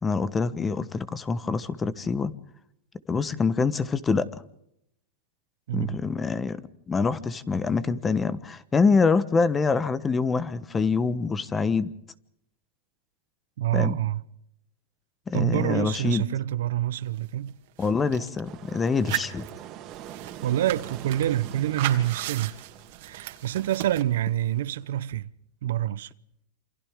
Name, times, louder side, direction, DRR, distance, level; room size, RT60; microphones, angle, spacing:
voice 1, 0.0-2.3 3.1-4.3 5.7-6.6 6.9-11.9 13.7-14.0 15.3-16.2 17.8-19.5, left 4 dB, 15° left, 1.2 m, -25 dB
voice 2, 5.7-6.0 13.6-14.2 15.3-17.6 20.4-22.6 23.0-25.3 25.6-26.1, right 12 dB, 80° right, 0.8 m, -27 dB
sound 1, 17.2-17.3 17.5-18.4 18.9-24.0, right 16 dB, 65° right, 2.6 m, -36 dB
sound 2, 18.4-25.1, right 10 dB, 35° right, 2.6 m, -44 dB
28.0 x 26.5 x 3.7 m
supercardioid pair, 140°, 0 cm